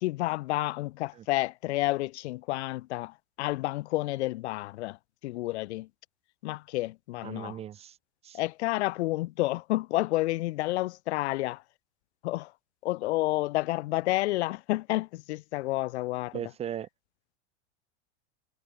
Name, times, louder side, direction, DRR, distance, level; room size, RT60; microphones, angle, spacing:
voice 1, 0.0-5.0 5.2-5.9 6.4-7.6 8.3-11.6 12.2-12.5 12.8-16.4, left 18 dB, 80° left, 0.6 m, -30 dB
voice 2, 7.2-8.0 8.2-8.4 16.3-16.9, right 10 dB, 20° right, 0.4 m, -38 dB
supercardioid pair, 130°, 33 cm